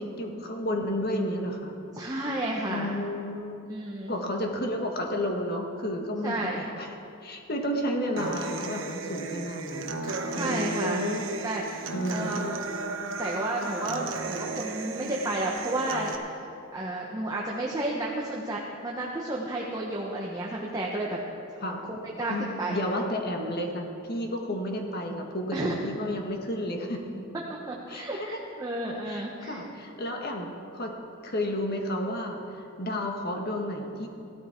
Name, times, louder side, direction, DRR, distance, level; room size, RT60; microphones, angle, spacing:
voice 1, 0.0-1.7 2.7-3.6 4.1-6.4 6.8-6.9 7.2-11.3 11.9-12.5 21.6-21.8 22.3-27.1 27.9-28.4 29.1-30.5 30.7-30.9 31.2-34.1, left 1 dB, 50° left, 2 dB, 1.6 m, -32 dB
voice 2, 1.9-2.9 3.7-4.1 6.2-6.7 10.4-11.1 11.4-11.7 12.1-12.4 13.2-16.1 16.7-21.2 21.9-22.8 25.5-25.7 27.5-29.6, right 1 dB, 20° right, -3 dB, 1.0 m, -32 dB
Human voice / Acoustic guitar, 8.2-16.1, right 2 dB, 70° right, 1.0 m, -34 dB
16.5 x 13.0 x 4.5 m, 2.7 s
head